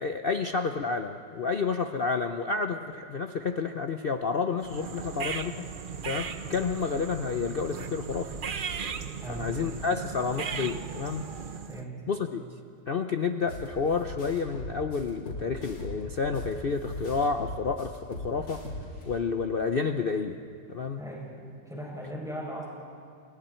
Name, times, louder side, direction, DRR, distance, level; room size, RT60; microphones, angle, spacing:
voice 1, 0.0-5.7 6.0-8.4 9.3-11.2 12.1-12.4 12.9-18.6 19.1-20.4 20.7-21.0, left 5 dB, 90° left, 6 dB, 0.5 m, -30 dB
sound 1, 4.6-11.9, right 6 dB, 70° right, 0.4 m, -37 dB
voice 2, 9.2-9.8 11.7-12.1 21.0-21.2 21.7-22.6, equal, ahead, -4 dB, 7.3 m, -38 dB
sound 2, 13.5-13.7 14.0-16.5 16.9-19.0, left 1 dB, 70° left, 4.5 m, -38 dB
29.0 x 29.0 x 4.4 m, 2.3 s
omnidirectional pair, 2.1 m